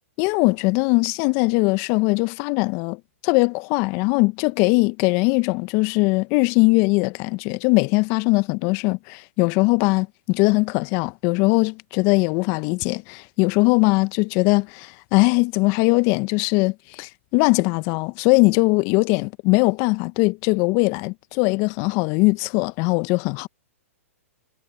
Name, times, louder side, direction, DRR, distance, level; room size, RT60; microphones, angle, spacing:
voice 1, 0.2-23.5, left 27 dB, 40° left, 1.1 m, -20 dB
hypercardioid pair, 120°, 8 cm